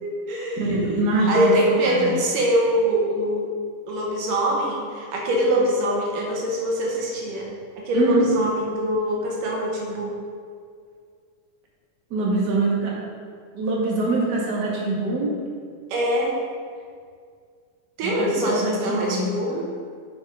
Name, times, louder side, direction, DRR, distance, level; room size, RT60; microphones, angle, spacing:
voice 1, 0.0-1.0 1.3-3.5 3.9-7.5 7.8-10.1 15.9-16.3 18.0-19.7, equal, 80° right, -2 dB, 3.0 m, -23 dB
voice 2, 0.6-1.6 1.9-2.1 7.9-8.2 12.1-12.9 13.5-15.4 18.0-19.3, right 2 dB, 40° right, -4 dB, 1.9 m, -24 dB
9.2 x 7.0 x 5.0 m, 2.1 s
omnidirectional pair, 3.7 m